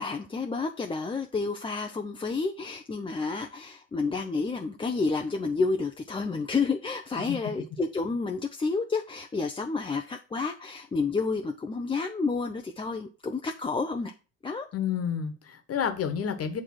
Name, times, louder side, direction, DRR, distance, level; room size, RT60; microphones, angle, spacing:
voice 1, 0.0-14.1 14.4-14.7, left 4 dB, 15° left, 0.6 m, -30 dB
voice 2, 14.7-16.6, left 8 dB, 35° left, 1.4 m, -30 dB
8.8 x 3.2 x 6.1 m
hypercardioid pair, 70°, 40 cm